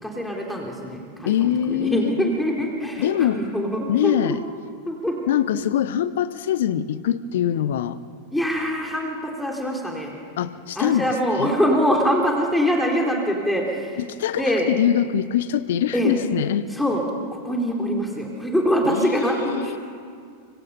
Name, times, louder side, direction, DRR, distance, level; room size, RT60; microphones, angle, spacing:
voice 1, 0.0-4.3 4.9-5.2 8.3-10.1 10.8-14.0 14.4-14.7 15.9-16.2 16.7-17.0 17.3-19.8, equal, 5° left, 0 dB, 3.3 m, -24 dB
voice 2, 1.2-2.1 3.0-3.4 3.9-4.4 5.3-8.0 10.4-11.1 11.4-11.5 14.0-16.7 18.9-19.8, left 10 dB, 55° left, 16 dB, 0.8 m, -23 dB
25.0 x 23.5 x 5.6 m, 2.2 s
figure-of-eight pair, 90°, 0 cm